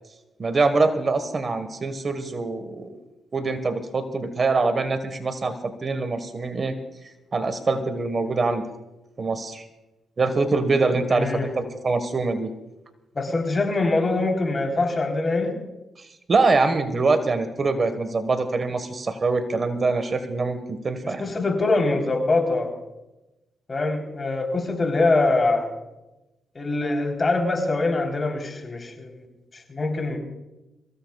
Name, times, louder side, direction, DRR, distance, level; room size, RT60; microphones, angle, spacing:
voice 1, 0.4-2.9 3.3-6.8 7.3-8.7 9.2-9.7 10.2-12.5 16.3-21.3, right 3 dB, 45° right, 9 dB, 1.5 m, -24 dB
voice 2, 11.1-11.5 13.2-15.6 21.0-22.8 23.7-25.7 26.5-29.1 29.5-30.2, left 3 dB, 35° left, 3 dB, 3.8 m, -23 dB
25.5 x 15.5 x 2.4 m, 1.0 s
cardioid pair, 65°, 0 cm